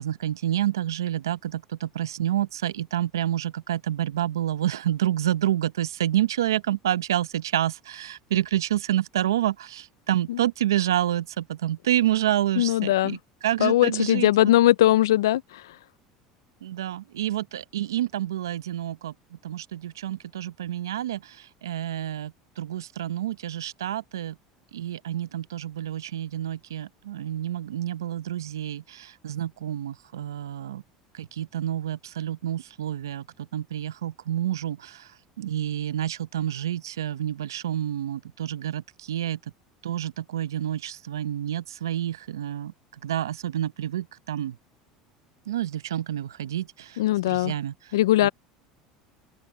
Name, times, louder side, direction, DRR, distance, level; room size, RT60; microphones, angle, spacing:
voice 1, 0.0-14.5 16.6-24.4 24.7-30.8 31.1-35.1 35.4-39.4 39.8-42.7 43.0-44.6 45.5-47.0 47.3-47.9 48.2-48.3, right 12 dB, 90° right, 0.8 m, -28 dB
voice 2, 12.6-13.2 13.6-15.4 47.0-47.5 47.9-48.3, left 14 dB, 85° left, 0.5 m, -20 dB
open air
hypercardioid pair, 85°, 2 cm